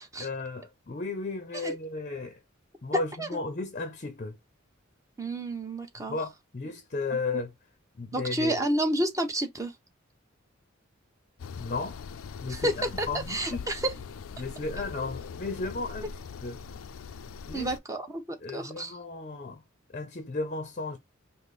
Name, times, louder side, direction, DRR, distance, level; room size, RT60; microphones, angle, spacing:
voice 1, 0.2-2.4 2.8-4.4 6.0-7.5 8.0-8.6 11.6-12.0 12.4-13.7 14.4-16.6 17.4-17.7 18.4-19.6 19.9-21.0, left 3 dB, 40° left, 0.6 m, -34 dB
voice 2, 5.2-6.1 7.3-7.4 8.1-9.7 12.5-13.8 17.5-18.2 18.5-18.9, right 1 dB, 15° right, 0.9 m, -30 dB
sound 1, 11.4-17.8, left 5 dB, 85° left, 0.4 m, -41 dB
5.1 x 2.1 x 3.9 m
head